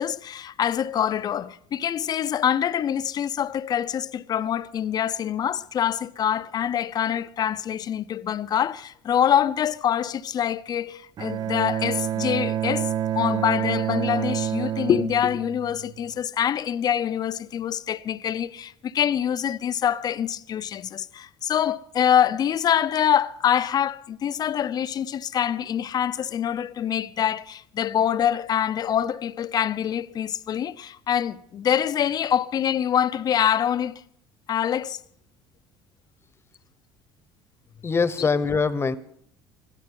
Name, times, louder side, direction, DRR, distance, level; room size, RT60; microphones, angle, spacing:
voice 1, 0.0-12.9 13.1-34.0 34.5-35.0 38.2-38.3, left 9 dB, 45° left, 0.6 m, -25 dB
Bowed string instrument, 11.2-16.2, right 10 dB, 40° right, 0.5 m, -28 dB
voice 2, 37.8-39.0, left 5 dB, 25° left, 1.0 m, -23 dB
21.0 x 13.5 x 3.8 m
supercardioid pair, 90°, 10 cm